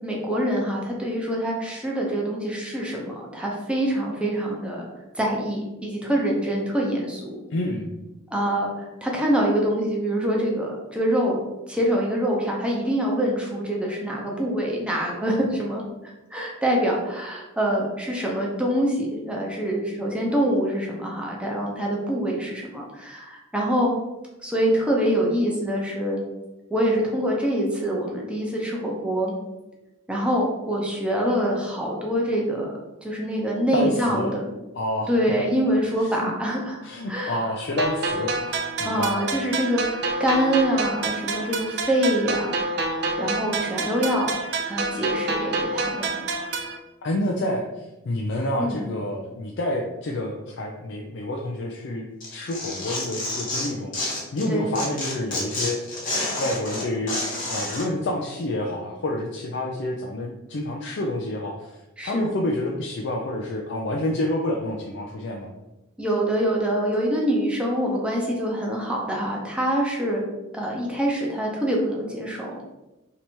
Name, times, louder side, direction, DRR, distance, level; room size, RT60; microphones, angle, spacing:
voice 1, 0.0-4.9 5.1-7.4 8.3-11.4 11.7-15.8 16.3-23.9 24.4-26.2 26.7-29.3 30.1-32.7 33.0-34.4 35.1-36.8 37.1-37.4 38.8-42.9 43.2-44.4 44.7-46.1 48.6-48.8 54.5-54.7 62.0-62.3 66.0-70.2 70.5-72.6, equal, 5° right, -2 dB, 0.7 m, -25 dB
voice 2, 7.5-7.9 33.7-34.3 34.7-35.1 36.0-36.3 36.8-39.1 47.0-55.8 56.4-57.2 57.4-65.5, left 1 dB, 55° left, 0 dB, 0.4 m, -28 dB
sound 1, 37.8-46.8, right 3 dB, 55° right, 0.5 m, -28 dB
Tearing, 52.2-54.5 54.7-57.8, left 2 dB, 40° left, 1.2 m, -29 dB
3.2 x 2.9 x 4.3 m, 1.0 s
head